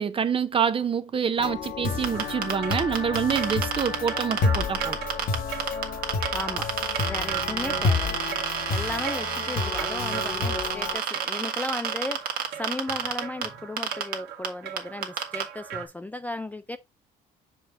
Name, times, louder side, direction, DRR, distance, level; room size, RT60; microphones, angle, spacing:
voice 1, 0.0-5.0, right 7 dB, 30° right, 0.7 m, -26 dB
sound 1, 1.4-11.0, left 4 dB, 60° left, 1.2 m, -30 dB
sound 2, 2.0-5.4 5.6-13.5 13.8-14.1 14.4-14.5 14.8-15.4, right 8 dB, 60° right, 1.4 m, -29 dB
sound 3, 2.1-15.9, right 10 dB, 80° right, 1.5 m, -39 dB
voice 2, 6.3-6.7 7.0-8.2 8.7-16.8, left 2 dB, 10° left, 0.3 m, -35 dB
6.2 x 4.6 x 3.3 m
cardioid pair, 110°, 17 cm